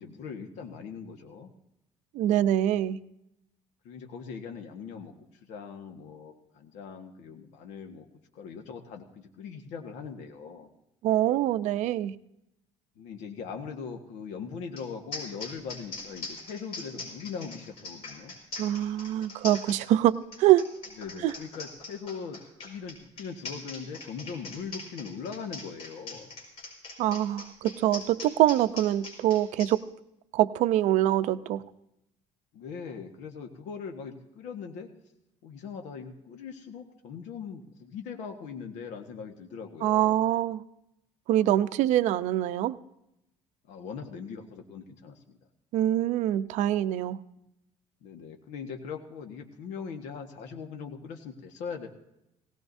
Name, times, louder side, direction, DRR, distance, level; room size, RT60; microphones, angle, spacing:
voice 1, 0.0-1.5 3.8-5.1 5.4-8.1 8.3-10.7 13.0-18.3 21.0-22.4 22.6-26.3 32.5-34.9 35.4-40.3 43.7-45.4 48.0-51.9, left 6 dB, 85° left, 4 dB, 1.5 m, -40 dB
voice 2, 2.1-3.0 11.0-12.1 18.6-20.7 21.2-21.3 27.0-29.8 30.3-31.6 39.8-40.6 41.3-42.7 45.7-47.2, right 13 dB, 75° right, 13 dB, 0.6 m, -24 dB
sound 1, 14.8-14.9 15.1-29.7, left 3 dB, 50° left, 5.0 m, -41 dB
18.5 x 17.5 x 2.7 m, 0.84 s
cardioid pair, 140°, 12 cm